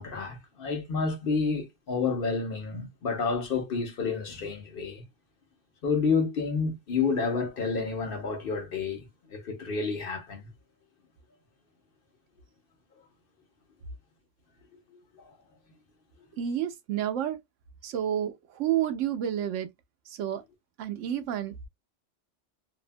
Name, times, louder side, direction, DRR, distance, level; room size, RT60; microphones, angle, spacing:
voice 1, 0.0-5.0 5.8-9.1 9.3-10.5 14.9-15.3, left 4 dB, 55° left, 0.8 m, -30 dB
voice 2, 16.4-17.4 17.8-19.7 20.1-20.4 20.8-21.7, right 10 dB, 85° right, 1.0 m, -30 dB
2.7 x 2.2 x 2.5 m
omnidirectional pair, 1.2 m